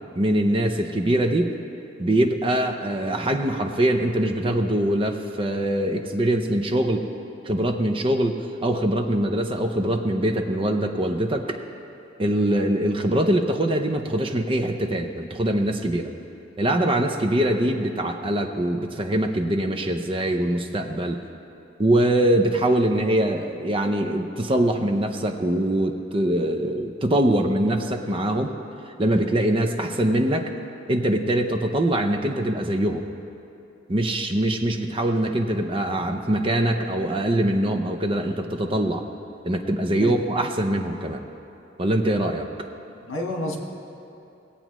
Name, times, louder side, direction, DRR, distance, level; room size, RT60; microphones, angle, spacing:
voice 1, 0.2-1.5 2.0-7.1 7.4-11.6 12.2-16.1 16.6-21.2 21.8-28.5 29.0-30.5 30.9-33.1 33.9-39.0 39.4-41.2 41.8-42.5, right 1 dB, 25° right, 5 dB, 0.6 m, -23 dB
voice 2, 42.9-43.6, left 1 dB, 80° left, 0 dB, 1.5 m, -30 dB
19.5 x 8.4 x 3.0 m, 2.8 s
head